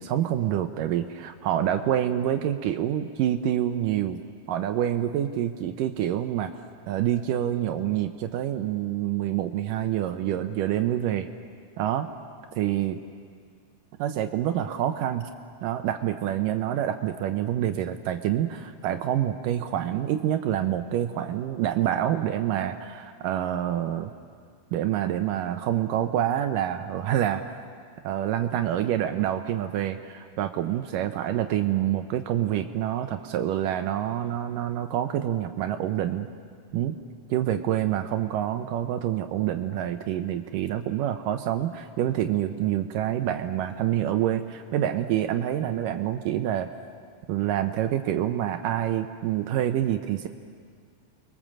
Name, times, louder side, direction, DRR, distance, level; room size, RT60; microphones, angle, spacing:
voice 1, 0.0-4.2 4.5-6.5 6.9-11.3 11.8-12.1 12.5-13.0 14.0-15.3 15.6-24.1 24.7-27.6 28.0-36.3 36.7-37.0 37.3-46.7 47.3-50.3, right 11 dB, 80° right, 7 dB, 2.4 m, -27 dB
30.0 x 22.0 x 7.5 m, 2.1 s
omnidirectional pair, 3.9 m